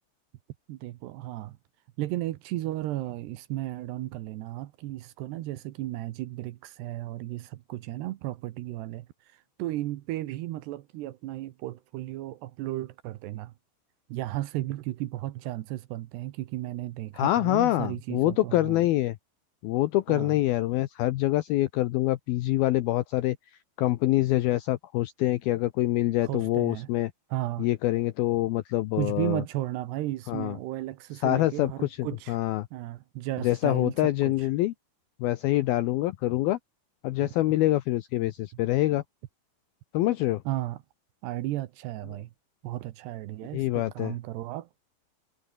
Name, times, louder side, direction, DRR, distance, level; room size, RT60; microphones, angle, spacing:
voice 1, 0.7-1.6 2.0-9.1 9.3-13.5 14.1-18.9 20.1-20.4 26.2-26.9 27.3-27.7 28.9-32.4 32.7-34.5 37.2-37.3 40.5-40.8 41.2-42.3 42.6-44.7, right 16 dB, 75° right, 2.9 m, -34 dB
voice 2, 17.2-19.2 19.6-23.4 23.8-27.1 27.6-29.4 30.3-30.6 31.2-32.7 33.4-34.7 35.2-36.6 37.0-39.0 39.9-40.4 43.5-44.1, left 16 dB, 80° left, 2.2 m, -25 dB
omnidirectional pair, 5.3 m